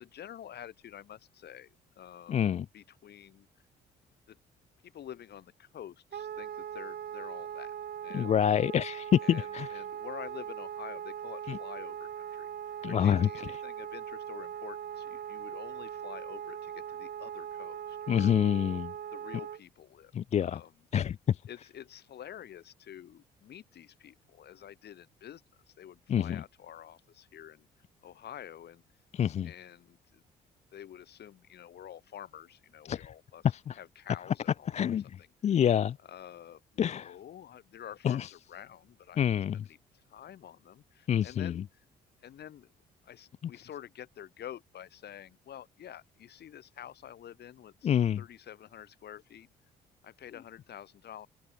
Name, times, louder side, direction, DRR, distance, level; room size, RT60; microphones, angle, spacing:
voice 1, 0.0-3.5 4.3-4.4 4.8-7.7 8.0-8.4 9.2-12.5 12.9-18.3 19.1-20.1 20.4-20.7 21.5-25.4 25.7-27.7 28.0-28.8 29.4-30.2 30.7-33.4 33.8-34.7 36.0-39.3 39.7-39.8 40.1-41.6 42.2-42.7 43.0-49.5 50.0-51.3, left 10 dB, 60° left, 4.9 m, -48 dB
voice 2, 2.3-2.7 8.1-9.7 11.5-11.6 12.8-13.3 18.1-18.9 20.1-20.6 20.9-21.4 26.1-26.4 29.1-29.5 32.9-33.1 33.5-33.8 34.7-36.0 36.8-37.1 38.0-38.3 39.2-39.6 41.1-41.6 47.8-48.2, left 9 dB, 35° left, 0.4 m, -27 dB
Wind instrument woodwind instrument, 6.1-19.6, right 9 dB, 55° right, 2.3 m, -40 dB
hypercardioid pair, 50°, 19 cm